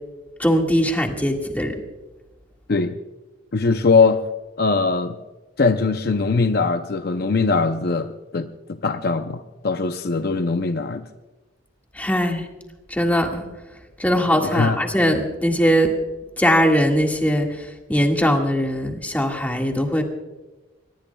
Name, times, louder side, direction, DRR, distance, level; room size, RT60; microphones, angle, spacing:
voice 1, 0.4-1.8 12.0-12.5 12.9-13.4 14.0-15.9 16.4-20.0, equal, 10° left, 2 dB, 1.8 m, -20 dB
voice 2, 3.5-4.2 4.6-5.2 5.6-11.1 14.0-14.8, left 4 dB, 50° left, 8 dB, 0.6 m, -21 dB
24.5 x 20.5 x 2.3 m, 1.2 s
head